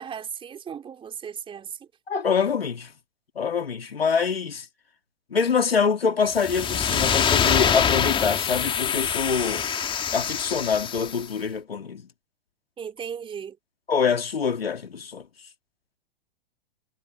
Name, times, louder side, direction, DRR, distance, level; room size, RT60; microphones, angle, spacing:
voice 1, 0.0-1.9 12.8-13.6, right 7 dB, 15° right, 4.0 m, -36 dB
voice 2, 2.1-2.9 3.3-4.7 5.3-9.7 10.1-12.1 13.9-15.3, left 6 dB, 70° left, 3.1 m, -25 dB
sound 1, 6.3-11.3, left 8 dB, 15° left, 2.6 m, -25 dB
figure-of-eight pair, 105°, 31 cm